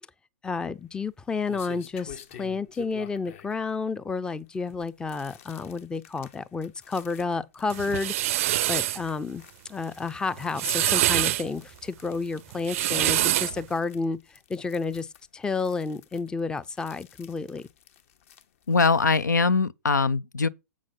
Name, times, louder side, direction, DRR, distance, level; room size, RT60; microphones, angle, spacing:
voice 1, 0.4-9.4 9.7-14.2 14.5-15.1 15.3-17.6, left 4 dB, 10° left, 0.5 m, -31 dB
sound 1, 0.7-19.2, left 9 dB, 50° left, 1.0 m, -51 dB
sound 2, 7.7-9.0 10.4-11.4 12.5-13.6, right 14 dB, 50° right, 0.5 m, -25 dB
voice 2, 18.7-20.5, left 4 dB, 80° left, 0.5 m, -22 dB
7.7 x 6.2 x 5.3 m
figure-of-eight pair, 110°, 10 cm